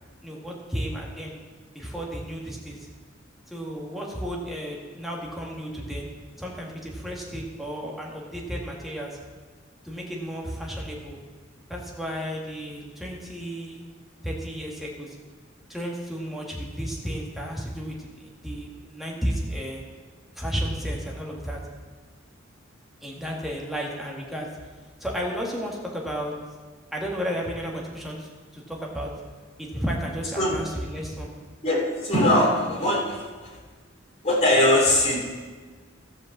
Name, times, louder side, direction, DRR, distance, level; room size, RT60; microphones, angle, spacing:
voice 1, 0.2-1.3 1.7-2.9 3.5-6.1 6.4-9.2 9.8-11.2 11.7-13.8 14.2-15.1 15.7-19.9 20.3-21.6 23.0-24.5 25.0-26.3 26.9-29.1 29.6-31.3, equal, ahead, -2 dB, 1.8 m, -33 dB
voice 2, 31.6-33.2 33.4-33.6 34.2-35.2, left 1 dB, 35° left, -4 dB, 3.2 m, -21 dB
13.0 x 5.4 x 7.3 m, 1.4 s
head